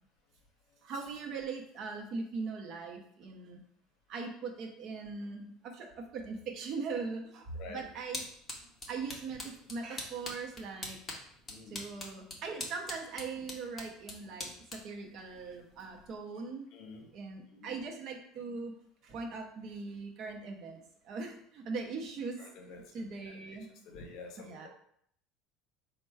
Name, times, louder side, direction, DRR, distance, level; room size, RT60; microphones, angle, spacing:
voice 1, 0.8-3.6 4.1-8.2 8.9-11.0 11.7-16.7 17.1-18.8 19.0-22.4 22.8-23.7 24.4-24.7, right 4 dB, 40° right, 2 dB, 0.7 m, -40 dB
voice 2, 7.5-7.8 11.5-11.8 16.7-17.1 17.5-17.8 22.4-23.4 23.8-24.7, left 4 dB, 50° left, 3 dB, 0.8 m, -49 dB
sound 1, 7.5-16.2, left 2 dB, 15° left, 0.8 m, -45 dB
4.4 x 2.2 x 4.6 m, 0.67 s
cardioid pair, 170°, 0 cm